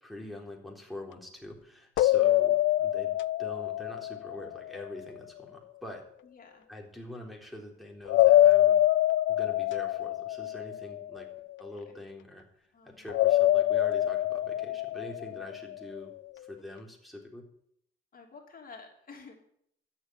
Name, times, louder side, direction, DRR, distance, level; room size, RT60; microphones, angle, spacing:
voice 1, 0.0-6.1 6.7-8.8 9.3-11.3 11.6-12.4 12.9-17.4, left 1 dB, ahead, -1 dB, 3.8 m, -44 dB
sound 1, 2.0-4.9 8.1-11.4 13.1-15.9, left 14 dB, 75° left, 0.5 m, -25 dB
voice 2, 6.2-6.6 11.9-12.0 12.7-13.1 15.2-15.4 18.1-19.4, left 4 dB, 45° left, 2 dB, 2.9 m, -51 dB
13.0 x 7.6 x 9.7 m, 0.70 s
cardioid pair, 90°, 20 cm